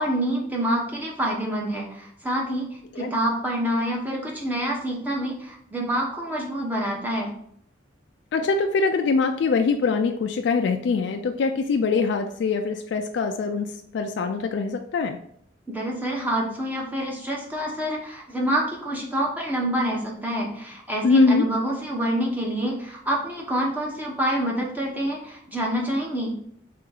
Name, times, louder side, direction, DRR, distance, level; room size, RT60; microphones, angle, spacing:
voice 1, 0.0-2.7 3.0-7.3 15.7-26.3, right 1 dB, 10° right, -2 dB, 0.8 m, -27 dB
voice 2, 8.3-15.2 21.0-21.5, left 4 dB, 65° left, 5 dB, 0.3 m, -23 dB
3.4 x 2.8 x 3.9 m, 0.68 s
head